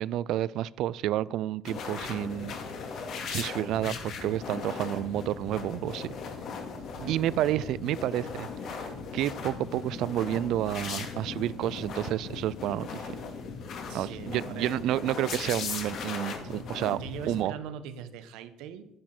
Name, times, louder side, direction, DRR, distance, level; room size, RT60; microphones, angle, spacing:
voice 1, 0.0-2.5 3.3-6.1 7.1-13.0 13.9-17.0 17.3-17.5, right 13 dB, 65° right, 20 dB, 0.4 m, -30 dB
sound 1, 1.6-17.4, left 5 dB, 55° left, 2.3 m, -38 dB
voice 2, 6.8-7.2 13.9-14.8 16.4-16.5 16.9-18.9, right 8 dB, 90° right, 10 dB, 1.3 m, -42 dB
11.5 x 10.5 x 6.0 m, 0.81 s
cardioid pair, 150°, 0 cm